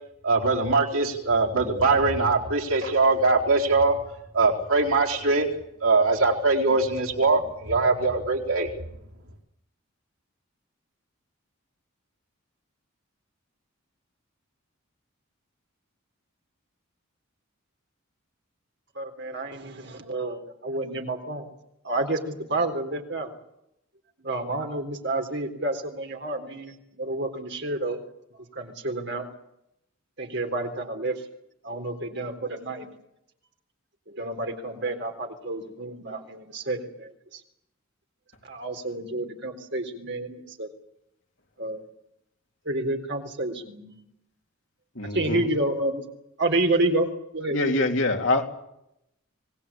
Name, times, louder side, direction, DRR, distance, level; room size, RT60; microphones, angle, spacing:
voice 1, 0.2-3.9 4.3-5.5 5.8-8.7, right 3 dB, 85° right, 0 dB, 4.3 m, -22 dB
voice 2, 19.0-21.5 21.8-23.3 24.2-28.0 28.6-29.3 30.2-31.2 31.6-32.9 34.1-37.4 38.4-40.7 41.6-41.9 42.7-44.0 45.1-46.0 46.4-47.1 47.3-47.9, right 2 dB, 55° right, 4 dB, 3.7 m, -29 dB
voice 3, 45.0-45.5 47.5-48.4, left 2 dB, 60° left, 3 dB, 3.5 m, -24 dB
25.5 x 19.0 x 8.6 m, 0.81 s
head